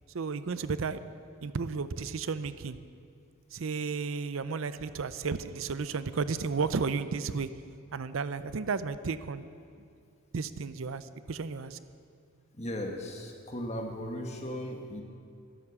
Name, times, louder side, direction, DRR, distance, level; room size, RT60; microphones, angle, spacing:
voice 1, 0.1-1.0 1.4-2.8 3.5-7.5 7.9-9.5 10.3-11.8, right 5 dB, 70° right, 13 dB, 0.5 m, -33 dB
voice 2, 12.5-15.0, left 1 dB, 30° left, 2 dB, 1.5 m, -37 dB
12.5 x 12.5 x 7.2 m, 2.3 s
head